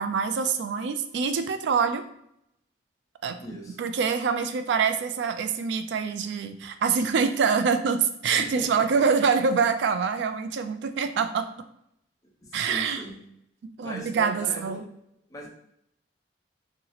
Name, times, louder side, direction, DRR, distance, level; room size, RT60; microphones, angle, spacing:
voice 1, 0.0-2.0 3.2-3.4 3.8-11.5 12.5-13.0 13.8-14.8, right 5 dB, 65° right, 9 dB, 0.3 m, -25 dB
voice 2, 3.4-3.9 8.3-9.1 12.4-13.2 13.8-14.8 15.3-15.5, equal, 20° left, -2 dB, 0.6 m, -39 dB
2.8 x 2.0 x 3.9 m, 0.75 s
head